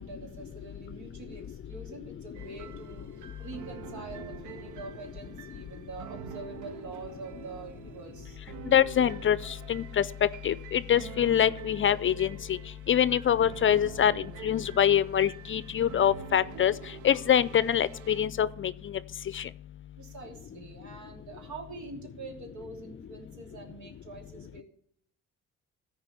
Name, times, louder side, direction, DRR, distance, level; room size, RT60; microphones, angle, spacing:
voice 1, 0.0-8.4 20.0-24.6, right 3 dB, 70° right, 3 dB, 3.0 m, -45 dB
sound 1, 2.3-18.2, right 10 dB, 85° right, 0.7 m, -46 dB
voice 2, 8.7-9.4 9.7-10.0 10.4-12.6 12.9-14.1 14.4-16.7 17.0-18.7 19.3-19.4, left 9 dB, 40° left, 18 dB, 0.5 m, -24 dB
14.0 x 4.8 x 8.0 m, 0.63 s
cardioid pair, 90°, 30 cm